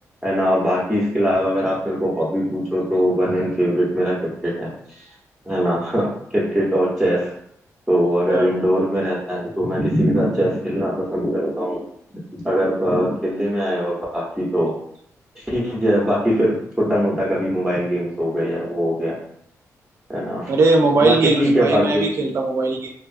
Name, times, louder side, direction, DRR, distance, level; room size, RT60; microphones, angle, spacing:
voice 1, 0.2-4.2 4.4-5.1 5.5-7.3 7.9-11.8 12.3-14.7 15.4-19.2 20.1-20.5 21.0-22.0, equal, 5° right, -6 dB, 0.7 m, -21 dB
voice 2, 20.5-22.9, right 3 dB, 50° right, 3 dB, 0.4 m, -19 dB
2.7 x 2.3 x 2.4 m, 0.70 s
cardioid pair, 120°, 6 cm